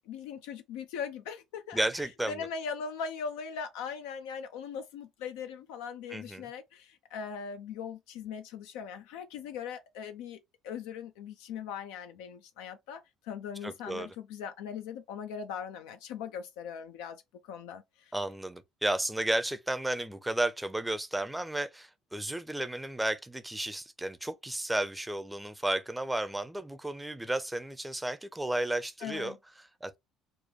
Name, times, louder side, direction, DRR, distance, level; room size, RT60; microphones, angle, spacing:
voice 1, 0.0-1.8 2.3-10.4 10.6-18.1 29.0-29.4, left 6 dB, 65° left, 0.4 m, -40 dB
voice 2, 1.7-2.5 6.1-6.5 13.6-14.1 18.1-30.0, right 1 dB, 10° right, 0.6 m, -33 dB
4.4 x 2.2 x 3.0 m
figure-of-eight pair, 55°, 0 cm